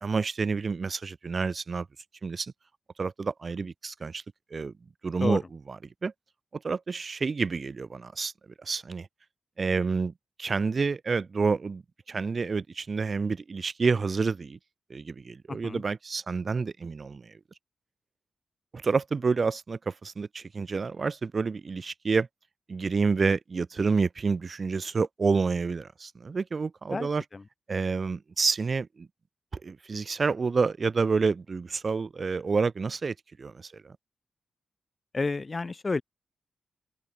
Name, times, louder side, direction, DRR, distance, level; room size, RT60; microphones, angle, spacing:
voice 1, 0.0-1.9 2.2-2.5 3.0-4.2 4.5-4.7 5.0-6.1 6.6-8.3 8.6-9.1 9.6-10.1 10.4-11.8 12.1-14.6 14.9-17.3 18.7-22.3 22.7-27.2 27.7-29.1 29.5-34.0, right 4 dB, 45° right, 1.7 m, -29 dB
voice 2, 15.5-15.8 26.9-27.4 35.1-36.0, left 3 dB, 35° left, 0.5 m, -30 dB
open air
cardioid pair, 70°, 0 cm